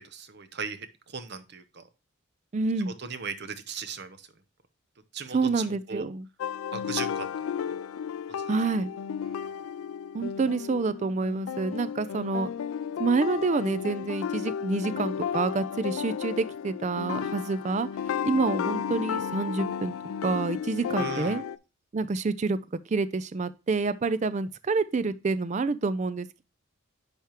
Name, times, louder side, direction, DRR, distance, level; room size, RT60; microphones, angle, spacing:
voice 1, 0.0-1.9 2.9-4.3 5.1-6.1 6.7-7.7 8.3-8.4 9.3-9.6 21.0-21.4, right 5 dB, 50° right, 0.8 m, -38 dB
voice 2, 2.5-2.9 5.3-6.3 8.5-8.9 10.1-12.5 13.0-17.9 18.2-19.9 20.2-21.4 21.9-22.6 22.9-26.4, right 3 dB, 35° right, 0.3 m, -28 dB
sound 1, 6.4-21.6, left 8 dB, 75° left, 0.3 m, -33 dB
10.0 x 3.5 x 2.9 m
head